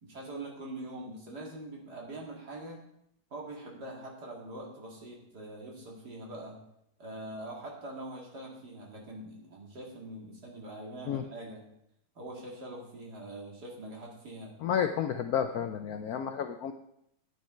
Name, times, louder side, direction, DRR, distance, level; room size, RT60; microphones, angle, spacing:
voice 1, 0.0-2.8 3.3-6.6 7.0-11.6 12.1-14.6, right 1 dB, 50° right, -2 dB, 2.9 m, -43 dB
voice 2, 14.6-16.7, left 8 dB, 85° left, 8 dB, 0.8 m, -31 dB
10.5 x 9.0 x 4.4 m, 0.77 s
omnidirectional pair, 2.3 m